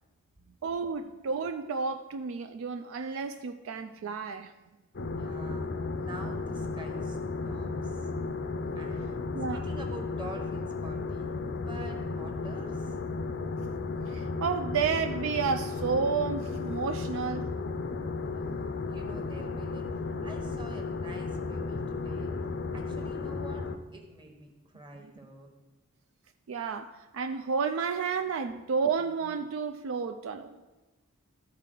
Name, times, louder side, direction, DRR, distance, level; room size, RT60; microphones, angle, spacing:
voice 1, 0.6-4.5 9.3-9.6 14.0-17.5 26.5-30.6, right 5 dB, 60° right, 7 dB, 0.3 m, -31 dB
sound 1, 4.9-23.8, left 3 dB, 50° left, 0.5 m, -34 dB
voice 2, 5.1-8.1 8.7-9.2 9.5-11.3 11.6-13.0 18.3-22.3 22.7-25.5, right 2 dB, 20° right, 2 dB, 1.0 m, -47 dB
13.5 x 4.5 x 3.8 m, 1.2 s
head